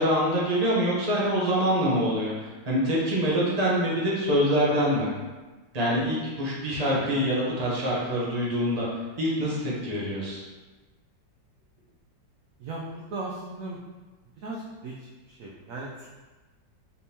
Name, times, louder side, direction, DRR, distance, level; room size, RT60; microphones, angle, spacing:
voice 1, 0.0-5.1 5.7-8.8 9.2-10.4, equal, 45° right, -5 dB, 0.5 m, -25 dB
voice 2, 12.6-13.8 14.4-16.1, right 2 dB, 80° right, -3 dB, 0.7 m, -37 dB
4.3 x 3.4 x 2.8 m, 1.3 s
omnidirectional pair, 2.0 m